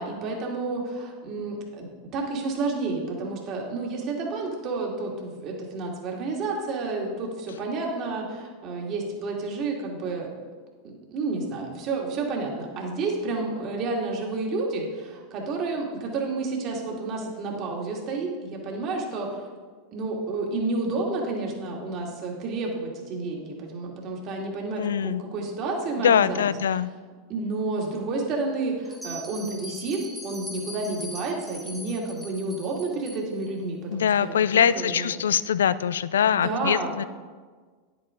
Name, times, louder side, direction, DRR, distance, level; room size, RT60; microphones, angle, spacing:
voice 1, 0.0-10.3 10.8-19.5 19.9-26.4 27.3-35.1 36.1-36.9, right 3 dB, 45° right, 0 dB, 2.3 m, -30 dB
voice 2, 24.8-25.2 26.0-26.9 33.9-37.0, left 8 dB, 80° left, 17 dB, 0.3 m, -23 dB
Bell, 28.9-33.5, equal, 5° left, 1.6 m, -41 dB
10.5 x 8.2 x 3.8 m, 1.5 s
hypercardioid pair, 95°, 0 cm